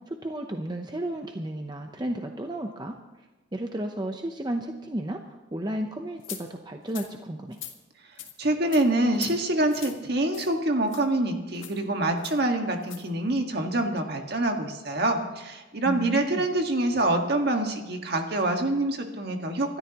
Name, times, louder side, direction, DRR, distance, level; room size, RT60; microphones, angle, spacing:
voice 1, 0.1-3.3 3.5-7.6 15.8-16.4, right 1 dB, 20° right, 4 dB, 0.8 m, -33 dB
sound 1, 6.2-6.4 6.9-7.1 7.5-7.7 8.2-8.3 8.7-8.8 9.1-9.3 9.7-10.0 10.3-10.5 10.9-11.0 11.6-11.8 12.2-12.4 12.8-13.0, left 10 dB, 80° left, 1.7 m, -40 dB
voice 2, 8.4-19.8, right 1 dB, 55° right, 3 dB, 1.7 m, -26 dB
26.0 x 13.0 x 3.0 m, 1.1 s
head